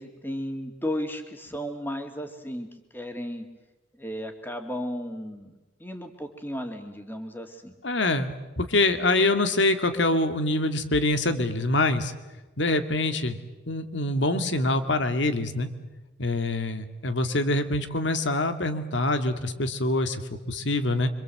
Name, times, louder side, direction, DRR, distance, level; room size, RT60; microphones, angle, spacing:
voice 1, 0.0-3.5 3.9-5.5 5.8-7.7, equal, 10° left, 5 dB, 2.4 m, -34 dB
voice 2, 7.8-12.1 12.6-15.7 16.2-20.2 20.5-21.1, left 2 dB, 80° left, 9 dB, 2.0 m, -25 dB
25.5 x 25.5 x 7.8 m, 1.1 s
head